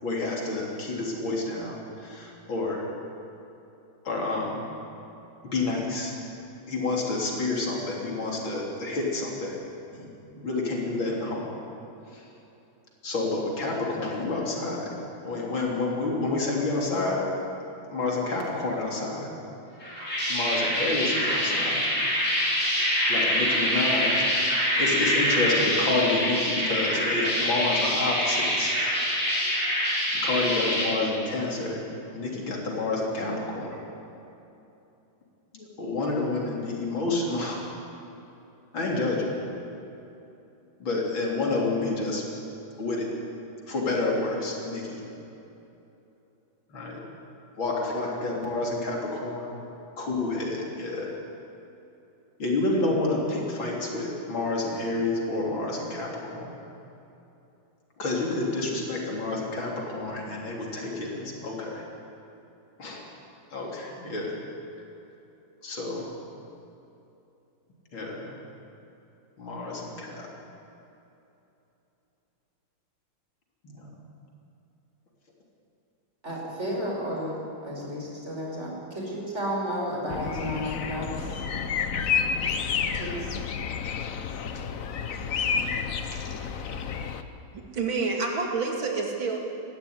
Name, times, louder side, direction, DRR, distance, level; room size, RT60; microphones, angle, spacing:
voice 1, 0.0-2.8 4.0-4.6 5.4-6.1 6.7-9.6 9.9-11.5 12.1-12.2 13.0-14.9 15.2-17.3 17.9-19.3 20.3-21.8 22.8-24.3 24.8-28.8 30.1-31.8 32.1-33.8 35.5-37.6 38.7-39.3 40.8-42.2 42.8-43.1 43.7-45.0 46.7-47.0 47.6-49.5 50.0-51.1 52.4-56.5 58.0-61.8 62.8-63.0 63.5-64.4 65.6-66.1 67.9-68.3 69.4-70.3 73.7-74.0 84.5-84.6 85.5-85.7, left 2 dB, 75° left, -2 dB, 4.2 m, -29 dB
sound 1, 19.8-30.9, equal, 35° left, 7.1 m, -25 dB
voice 2, 76.2-77.3 77.6-81.4 83.0-83.3, equal, 35° right, -3 dB, 5.4 m, -32 dB
sound 2, 80.1-87.2, left 6 dB, 50° left, 1.1 m, -30 dB
voice 3, 87.5-89.4, right 4 dB, 75° right, 1 dB, 3.1 m, -28 dB
20.0 x 15.0 x 9.6 m, 2.9 s
omnidirectional pair, 2.2 m